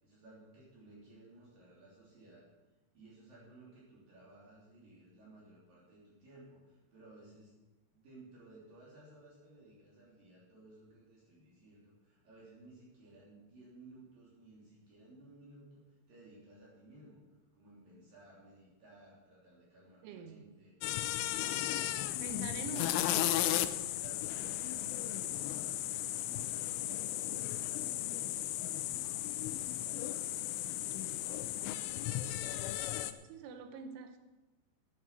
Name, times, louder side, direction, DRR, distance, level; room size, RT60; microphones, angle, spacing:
voice 1, 0.0-2.5 2.9-7.5 7.9-15.8 16.1-17.2 17.5-20.8 23.8-30.3, right 2 dB, 50° right, -6 dB, 4.6 m, -57 dB
voice 2, 20.0-20.5 22.2-23.3 33.3-34.2, right 5 dB, 80° right, 7 dB, 3.5 m, -45 dB
sound 1, 20.8-33.1, left 13 dB, 90° left, 3.2 m, -35 dB
9.8 x 9.4 x 7.5 m, 1.1 s
omnidirectional pair, 5.4 m